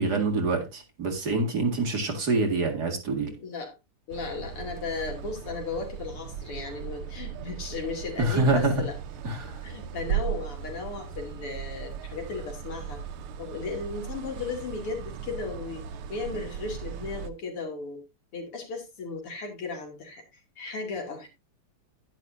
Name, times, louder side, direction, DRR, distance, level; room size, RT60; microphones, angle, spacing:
voice 1, 0.0-3.3 8.2-8.8 9.2-9.6, right 3 dB, 50° right, 2.5 m, -26 dB
voice 2, 3.3-3.7 4.1-9.0 9.6-13.0 13.4-18.0 18.3-21.3, left 4 dB, 85° left, 3.4 m, -36 dB
sound 1, 4.1-17.3, right 8 dB, 80° right, 1.7 m, -37 dB
10.5 x 10.5 x 2.6 m
omnidirectional pair, 2.4 m